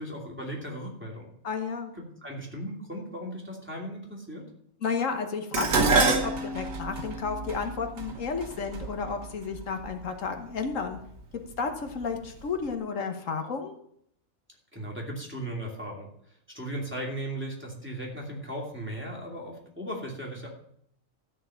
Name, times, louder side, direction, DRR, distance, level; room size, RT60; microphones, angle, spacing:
voice 1, 0.0-1.3 2.0-4.4 14.7-16.1 16.5-20.5, right 1 dB, 10° right, -2 dB, 2.8 m, -37 dB
voice 2, 1.4-1.9 4.8-11.0 11.6-13.7, left 5 dB, 75° left, 6 dB, 1.5 m, -32 dB
Dishes pots and pans, 5.5-9.9 10.8-11.2 11.6-12.4 12.7-12.8, right 4 dB, 85° right, 1.7 m, -28 dB
13.5 x 4.7 x 8.8 m, 0.69 s
omnidirectional pair, 1.4 m